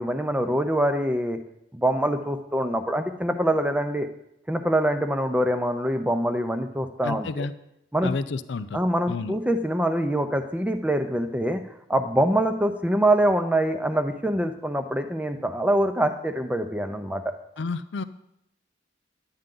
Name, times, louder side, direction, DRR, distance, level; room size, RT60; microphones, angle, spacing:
voice 1, 0.0-1.4 1.7-4.1 4.5-7.5 7.9-8.1 8.7-11.6 11.9-17.3, right 1 dB, 5° right, 7 dB, 0.6 m, -24 dB
voice 2, 7.0-7.5 8.0-8.8 9.1-9.4 17.6-18.0, left 3 dB, 70° left, 13 dB, 0.5 m, -30 dB
11.0 x 8.9 x 3.8 m, 0.80 s
head